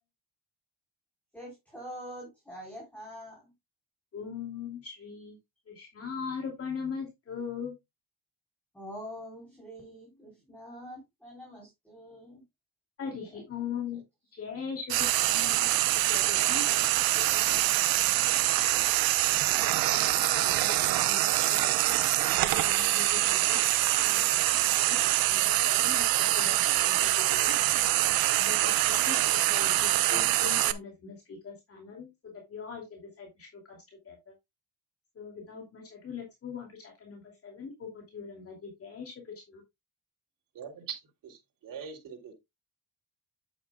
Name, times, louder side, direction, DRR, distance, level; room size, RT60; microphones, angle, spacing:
voice 1, 1.3-3.4 8.7-12.4 13.0-13.3 13.9-14.0 16.6-16.9 17.6-18.7, equal, 5° left, 4.1 m, -46 dB
voice 2, 4.1-5.4 5.7-7.7 13.0-14.0 14.3-16.9 17.3-17.5 19.9-21.9 22.4-23.6 24.0-24.4 24.9-27.5 28.4-32.1 32.5-33.8 34.1-34.2 35.2-39.6, left 6 dB, 40° left, 2.6 m, -41 dB
Frying (food), 14.9-30.7, right 15 dB, 80° right, 0.8 m, -25 dB
voice 3, 40.5-42.3, right 7 dB, 65° right, 3.2 m, -42 dB
9.2 x 8.4 x 2.3 m
cardioid pair, 140°, 35 cm